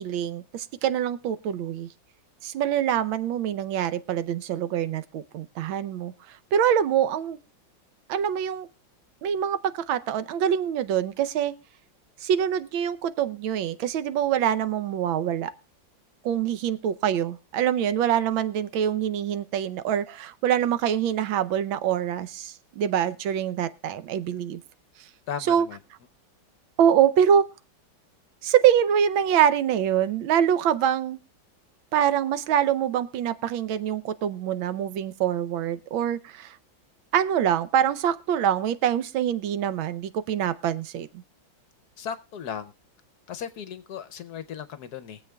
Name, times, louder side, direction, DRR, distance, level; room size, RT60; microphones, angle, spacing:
voice 1, 0.0-1.9 2.4-7.4 8.1-8.7 9.2-11.5 12.2-15.5 16.2-24.6 25.5-25.7 26.8-27.5 28.4-31.2 31.9-36.6 37.1-41.1, right 9 dB, 85° right, 13 dB, 1.5 m, -25 dB
voice 2, 25.3-25.8 42.0-42.7 43.3-45.2, left 8 dB, 65° left, 12 dB, 1.1 m, -36 dB
22.5 x 7.7 x 2.3 m, 0.31 s
omnidirectional pair, 2.1 m